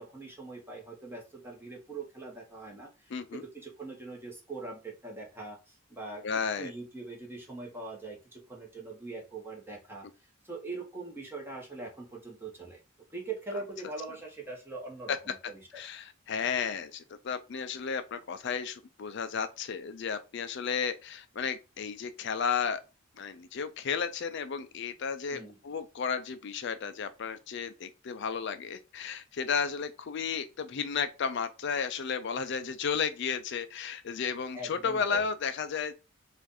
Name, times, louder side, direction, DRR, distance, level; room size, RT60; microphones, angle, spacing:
voice 1, 0.0-6.3 6.6-10.0 10.4-12.8 13.1-15.6 25.3-25.6 34.5-35.2, right 3 dB, 10° right, 1.4 m, -42 dB
voice 2, 3.1-3.4 6.2-6.7 15.1-15.2 15.7-22.8 23.2-35.9, left 6 dB, 55° left, 0.4 m, -33 dB
4.6 x 2.6 x 4.1 m
head